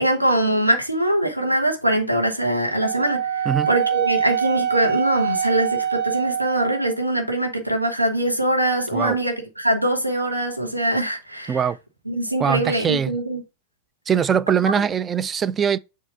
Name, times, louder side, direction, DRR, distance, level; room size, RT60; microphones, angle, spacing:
voice 1, 0.0-11.6 12.1-13.4, right 1 dB, 85° right, 1.3 m, -22 dB
Wind instrument woodwind instrument, 2.8-7.0, right 9 dB, 45° right, 0.8 m, -24 dB
voice 2, 12.4-13.1 14.1-15.8, right 7 dB, 20° right, 0.3 m, -21 dB
7.3 x 2.8 x 4.8 m
figure-of-eight pair, 90°, 0 cm